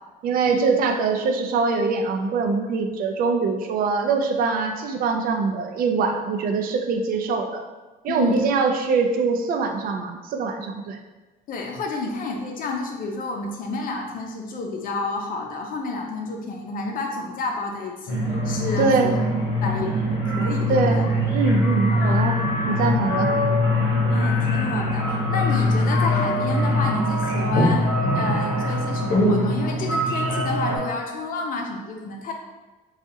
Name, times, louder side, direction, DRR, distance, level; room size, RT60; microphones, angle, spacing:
voice 1, 0.2-7.6 8.0-11.0 18.8-19.2 20.7-22.4 22.7-23.3, right 4 dB, 60° right, 4 dB, 0.5 m, -23 dB
voice 2, 8.1-8.4 11.5-19.1 19.6-19.9 20.2-21.0 21.9-22.2 24.1-32.3, left 3 dB, 55° left, 2 dB, 0.6 m, -30 dB
sound 1, 18.1-30.8, left 1 dB, 80° left, 0.9 m, -22 dB
4.1 x 2.4 x 2.7 m, 1.2 s
cardioid pair, 110°, 17 cm